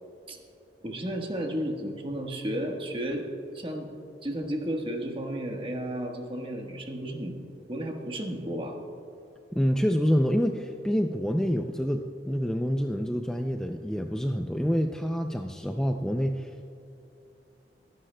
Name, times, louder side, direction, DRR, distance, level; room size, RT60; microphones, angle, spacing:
voice 1, 0.8-3.2 3.5-3.9 4.2-7.3 7.7-8.8, right 1 dB, 30° right, 2 dB, 1.3 m, -33 dB
voice 2, 9.6-16.6, equal, 5° left, 4 dB, 0.4 m, -27 dB
23.5 x 11.5 x 2.2 m, 2.9 s
head